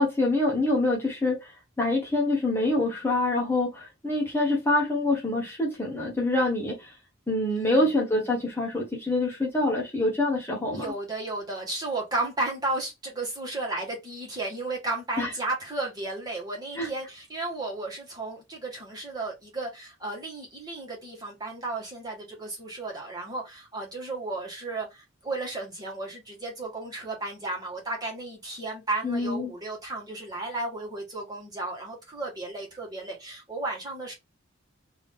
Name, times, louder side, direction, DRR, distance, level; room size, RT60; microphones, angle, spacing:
voice 1, 0.0-1.5 1.8-6.9 7.3-10.8 15.2-15.3 16.8-16.9 29.0-29.5, left 2 dB, 10° left, 1.0 m, -25 dB
voice 2, 7.6-8.4 10.7-34.1, right 2 dB, 20° right, 1.5 m, -34 dB
3.6 x 2.7 x 3.5 m
head